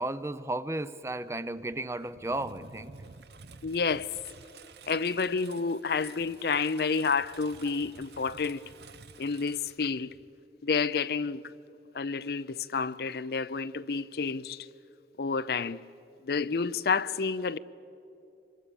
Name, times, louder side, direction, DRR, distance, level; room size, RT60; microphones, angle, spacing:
voice 1, 0.0-2.9, right 2 dB, 15° right, 0.5 m, -34 dB
Engine, 1.7-10.4, right 5 dB, 65° right, 0.7 m, -51 dB
voice 2, 3.6-4.1 4.9-8.6 9.2-10.1 10.6-11.4 11.9-14.7 15.2-15.8 16.2-17.6, left 5 dB, 60° left, 0.5 m, -29 dB
26.5 x 23.5 x 6.9 m
head